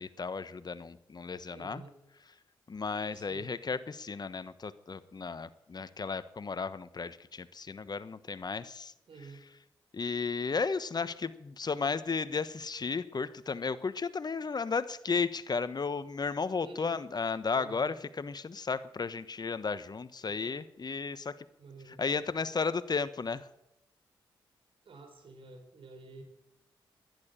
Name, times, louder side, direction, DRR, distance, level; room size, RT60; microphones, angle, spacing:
voice 1, 0.0-1.8 2.7-8.9 9.9-21.5 21.9-23.5, left 5 dB, 45° left, 14 dB, 1.1 m, -34 dB
voice 2, 1.5-1.9 3.1-3.5 9.1-9.4 16.6-17.0 17.5-17.9 20.2-20.5 21.6-22.0 24.8-26.2, right 3 dB, 65° right, 5 dB, 4.2 m, -50 dB
11.5 x 11.0 x 8.8 m, 0.84 s
supercardioid pair, 45°, 10 cm